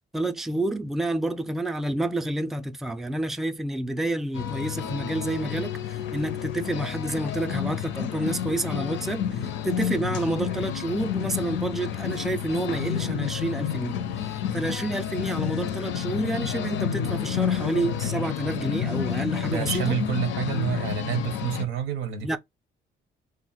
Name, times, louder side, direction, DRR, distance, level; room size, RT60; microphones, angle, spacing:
voice 1, 0.1-14.0 14.5-20.0 22.2-22.4, right 2 dB, ahead, 0.3 m, -29 dB
sound 1, 4.3-21.6, left 9 dB, 70° left, 0.5 m, -30 dB
voice 2, 19.5-22.4, right 9 dB, 90° right, 0.7 m, -28 dB
2.3 x 2.0 x 3.8 m
cardioid pair, 90°, 20 cm